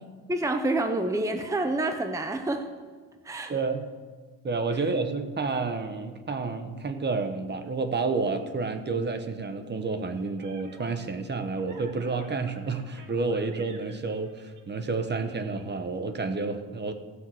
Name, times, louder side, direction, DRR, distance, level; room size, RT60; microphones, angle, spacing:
voice 1, 0.3-2.7 3.2-3.5 4.7-4.9, right 2 dB, 10° right, 6 dB, 0.9 m, -28 dB
voice 2, 3.5-3.8 4.4-16.9, right 4 dB, 30° right, 8 dB, 1.1 m, -30 dB
sound 1, 9.8-15.6, right 4 dB, 55° right, 2.0 m, -52 dB
15.0 x 5.8 x 7.7 m, 1.4 s
cardioid pair, 95°, 37 cm